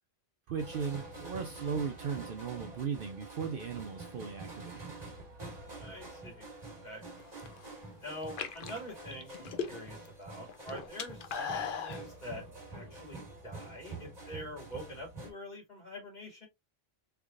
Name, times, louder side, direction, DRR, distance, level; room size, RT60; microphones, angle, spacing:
voice 1, 0.5-5.0, right 6 dB, 60° right, 0.7 m, -37 dB
sound 1, 0.6-15.3, right 2 dB, 35° right, 1.5 m, -47 dB
voice 2, 5.7-6.5 6.8-7.0 8.0-16.5, equal, 40° left, 2.3 m, -45 dB
sound 2, 7.2-7.7 8.2-10.1 10.4-12.0, left 6 dB, 55° left, 0.7 m, -38 dB
3.7 x 3.5 x 2.4 m
omnidirectional pair, 1.2 m